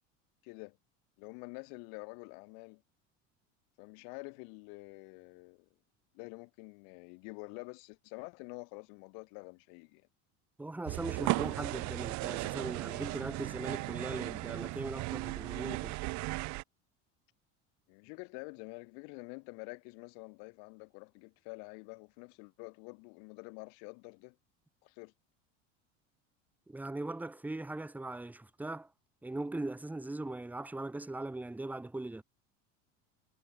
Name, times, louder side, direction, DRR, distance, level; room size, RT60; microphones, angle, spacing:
voice 1, 0.4-0.8 1.2-2.8 3.8-5.7 6.1-10.1 17.9-24.4 24.8-25.1, left 40 dB or more, 70° left, 1.9 m, -48 dB
voice 2, 10.6-16.0 26.7-28.9 29.2-32.2, right 2 dB, 5° right, 0.7 m, -40 dB
sound 1, 10.9-16.6, right 22 dB, 50° right, 0.6 m, -36 dB
supercardioid pair, 90°, 37 cm